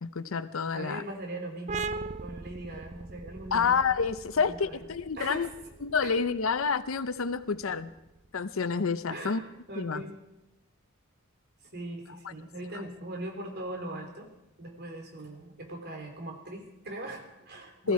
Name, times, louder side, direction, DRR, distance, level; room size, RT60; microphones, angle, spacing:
voice 1, 0.0-1.0 3.5-5.5 5.8-7.9 8.3-9.4 9.8-10.0 12.2-12.3 17.8-17.9, left 5 dB, 70° left, 13 dB, 0.6 m, -28 dB
voice 2, 0.7-1.9 2.2-3.8 4.5-4.8 5.1-5.5 6.0-6.1 9.1-10.2 11.7-14.3 14.6-17.9, right 1 dB, 50° right, 3 dB, 3.3 m, -40 dB
sound 1, 1.7-9.0, right 4 dB, 35° right, 0.4 m, -41 dB
19.5 x 14.5 x 4.7 m, 0.92 s
head